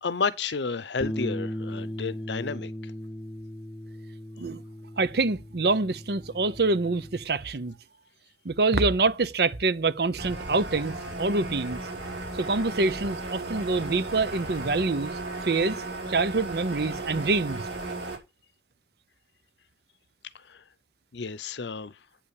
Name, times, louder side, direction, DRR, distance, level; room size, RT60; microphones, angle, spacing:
voice 1, 0.0-2.9 20.3-20.6 21.1-22.0, left 5 dB, 75° left, 0.7 m, -31 dB
Bass guitar, 1.0-7.3, equal, 15° left, 0.8 m, -37 dB
voice 2, 5.0-7.8 8.4-11.8 12.3-15.8 16.1-17.7, right 3 dB, 60° right, 0.7 m, -26 dB
sound 1, 10.2-18.2, right 2 dB, 75° right, 4.5 m, -35 dB
8.5 x 5.7 x 6.5 m
head